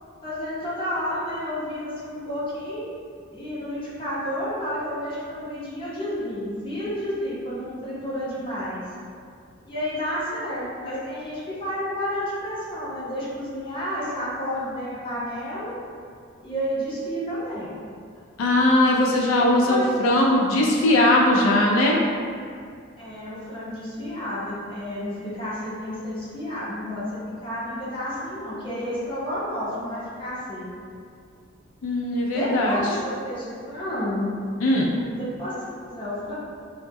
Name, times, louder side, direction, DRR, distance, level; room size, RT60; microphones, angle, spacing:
voice 1, 0.2-2.9 3.3-8.9 9.6-15.8 16.4-17.7 19.2-19.9 23.0-30.7 32.3-34.3 34.9-36.4, equal, 25° left, -9 dB, 0.6 m, -31 dB
voice 2, 18.4-22.0 31.8-32.8 34.6-34.9, left 1 dB, 85° left, -2 dB, 0.3 m, -19 dB
2.1 x 2.0 x 3.4 m, 2.2 s
head